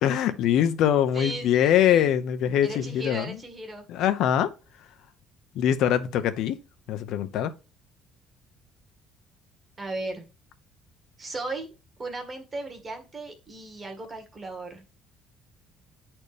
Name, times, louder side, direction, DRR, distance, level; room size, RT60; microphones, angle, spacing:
voice 1, 0.0-3.4 3.9-4.5 5.6-6.6 6.9-7.5, left 10 dB, 60° left, 0.7 m, -23 dB
voice 2, 1.1-2.1 2.6-3.9 9.8-10.2 11.2-11.7 12.0-14.8, right 2 dB, 20° right, 1.5 m, -36 dB
9.8 x 4.3 x 3.4 m
cardioid pair, 170°, 0 cm